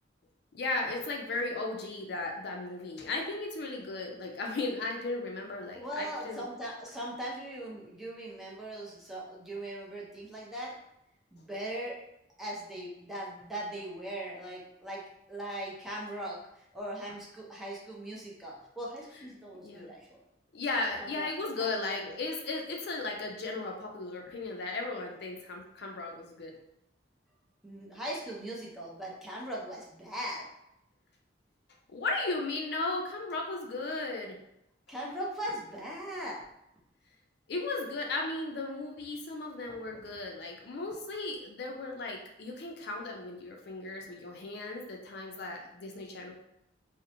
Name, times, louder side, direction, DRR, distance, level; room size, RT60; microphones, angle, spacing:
voice 1, 0.5-6.4 19.1-19.2 19.6-19.9 20.5-26.6 31.9-34.4 37.5-46.3, left 3 dB, 60° left, 1 dB, 0.4 m, -36 dB
voice 2, 5.7-10.7 11.3-12.0 12.4-15.0 15.3-20.2 21.0-21.3 21.6-22.0 24.3-24.4 27.6-30.4 34.9-36.4, right 1 dB, ahead, -5 dB, 0.4 m, -39 dB
2.8 x 2.0 x 2.6 m, 0.82 s
head